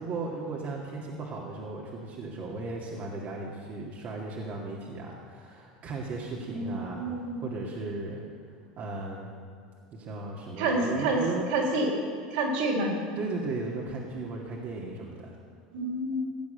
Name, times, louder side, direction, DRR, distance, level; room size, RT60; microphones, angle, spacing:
voice 1, 0.0-8.2 8.8-9.3 9.9-11.4 13.2-15.4, right 3 dB, 45° right, -3 dB, 2.1 m, -36 dB
voice 2, 6.5-7.4 10.6-11.2 11.5-11.9 12.3-12.9 15.7-16.2, right 2 dB, 70° right, -2 dB, 4.2 m, -28 dB
16.5 x 8.4 x 6.8 m, 2.2 s
hypercardioid pair, 90°, 4 cm